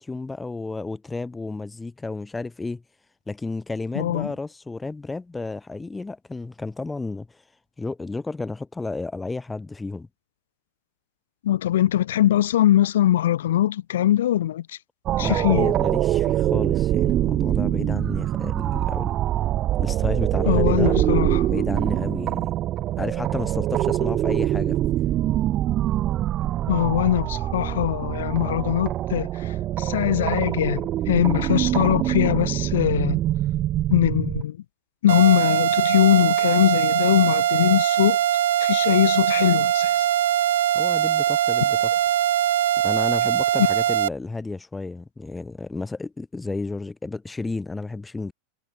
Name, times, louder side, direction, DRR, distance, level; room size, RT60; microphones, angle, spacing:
voice 1, 0.0-2.8 3.3-7.4 7.8-10.1 15.2-19.1 19.8-21.0 21.5-22.5 23.0-24.8 40.7-41.9 42.8-48.3, left 3 dB, 10° left, 4.6 m, -32 dB
voice 2, 3.9-4.3 11.4-14.8 15.2-15.7 20.5-21.5 26.7-33.2 33.9-34.6 35.0-38.2 38.6-40.1, left 12 dB, 85° left, 2.2 m, -21 dB
sound 1, 15.1-34.4, right 13 dB, 35° right, 1.5 m, -24 dB
sound 2, 35.1-44.1, right 11 dB, 85° right, 1.2 m, -21 dB
supercardioid pair, 135°, 0 cm